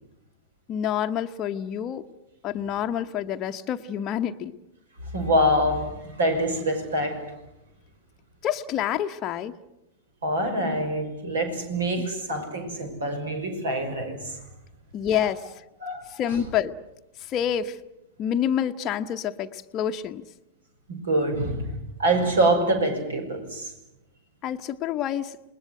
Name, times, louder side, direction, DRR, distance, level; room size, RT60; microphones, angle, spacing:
voice 1, 0.7-2.1 2.4-4.5 8.4-9.6 12.0-12.1 14.9-15.5 16.2-16.8 17.2-17.8 18.2-20.2 24.4-25.4, left 9 dB, 30° left, 6 dB, 0.9 m, -27 dB
voice 2, 5.1-7.2 10.2-14.3 15.2-15.3 15.8-16.2 20.9-21.7 22.0-23.7, right 1 dB, 65° right, 7 dB, 5.7 m, -25 dB
28.5 x 20.5 x 7.9 m, 0.92 s
figure-of-eight pair, 95°, 0 cm